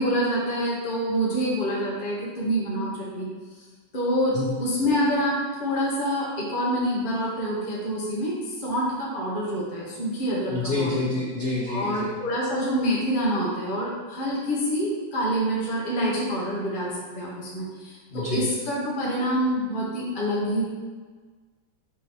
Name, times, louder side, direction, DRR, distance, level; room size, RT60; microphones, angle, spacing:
voice 1, 0.0-3.3 3.9-11.0 11.7-20.6, equal, 35° left, -6 dB, 0.8 m, -26 dB
voice 2, 10.5-12.1 18.1-18.5, left 2 dB, 65° left, -7 dB, 0.6 m, -28 dB
6.3 x 3.0 x 5.5 m, 1.4 s
omnidirectional pair, 2.4 m